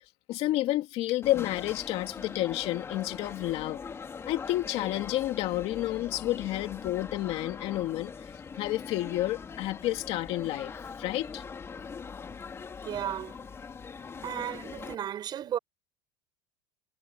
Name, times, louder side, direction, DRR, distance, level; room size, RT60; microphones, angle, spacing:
voice 1, 0.3-3.8 4.3-8.3 8.6-11.4, left 16 dB, 50° left, 2.4 m, -30 dB
sound 1, 1.2-15.0, left 5 dB, 20° left, 3.3 m, -42 dB
voice 2, 12.8-13.4 14.2-15.6, right 10 dB, 35° right, 7.3 m, -34 dB
supercardioid pair, 145°, 13 cm